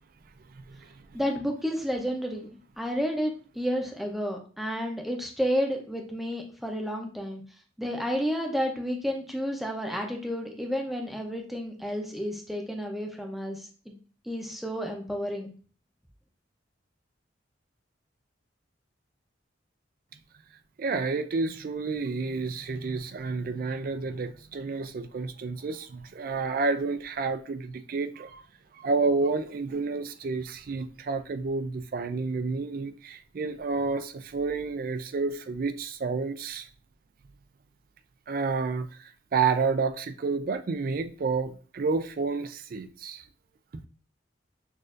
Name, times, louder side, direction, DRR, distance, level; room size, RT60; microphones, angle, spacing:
voice 1, 1.1-2.5 2.8-7.4 7.8-13.9 14.3-15.5, equal, ahead, 0.6 m, -31 dB
voice 2, 20.8-28.4 28.7-36.7 38.3-38.9 39.3-43.2, right 4 dB, 50° right, 0.4 m, -30 dB
6.3 x 2.5 x 2.5 m
head